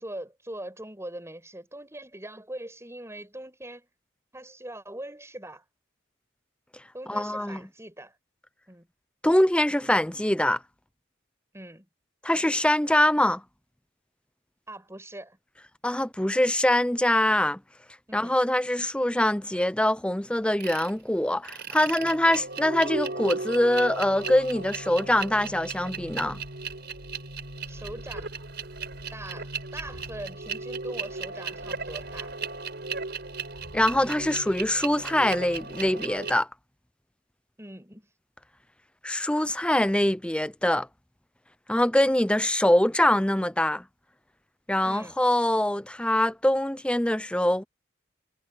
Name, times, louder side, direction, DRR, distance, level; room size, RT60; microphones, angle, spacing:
voice 1, 0.0-3.9 4.3-5.6 6.9-8.1 8.7-8.9 11.5-11.9 14.7-15.4 18.1-18.4 27.7-28.3 29.1-32.3 37.6-38.1 44.8-45.2, right 1 dB, 15° right, 7.7 m, -41 dB
voice 2, 7.1-7.6 9.2-10.6 12.2-13.4 15.8-17.6 18.1-26.4 33.7-36.5 39.0-40.9 41.7-43.8 44.7-47.6, left 1 dB, 5° left, 0.6 m, -24 dB
sound 1, 20.6-20.9 21.4-36.3, right 4 dB, 55° right, 5.3 m, -36 dB
head